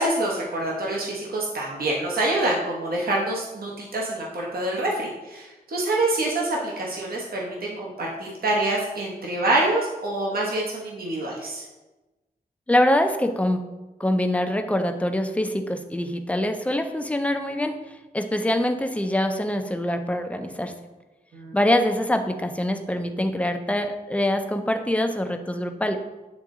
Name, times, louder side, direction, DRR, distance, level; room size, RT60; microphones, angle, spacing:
voice 1, 0.0-11.6 21.3-21.5, right 1 dB, 70° right, -3 dB, 1.1 m, -26 dB
voice 2, 12.7-13.6 14.0-20.7 21.5-26.0, left 1 dB, 10° left, 6 dB, 0.4 m, -24 dB
8.5 x 3.7 x 3.7 m, 1.1 s
wide cardioid pair, 165°, 16 cm